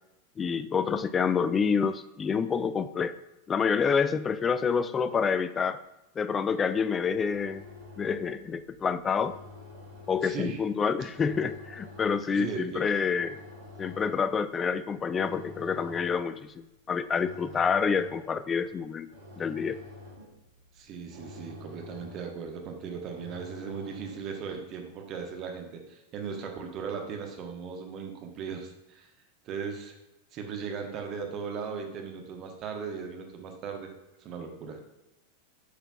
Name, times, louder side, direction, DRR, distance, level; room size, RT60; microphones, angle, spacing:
voice 1, 0.4-3.2 3.5-5.8 6.2-7.6 8.0-9.3 10.1-13.4 13.8-19.1 19.4-19.8, left 6 dB, 20° left, 14 dB, 0.3 m, -28 dB
sound 1, 7.1-24.5, left 2 dB, 65° right, 2.1 m, -49 dB
voice 2, 10.2-10.6 12.3-12.9 20.7-29.1 29.4-29.9 30.3-33.9 34.2-34.8, right 6 dB, 35° right, 3 dB, 1.1 m, -37 dB
8.2 x 5.8 x 2.4 m, 0.97 s
figure-of-eight pair, 90°, 0 cm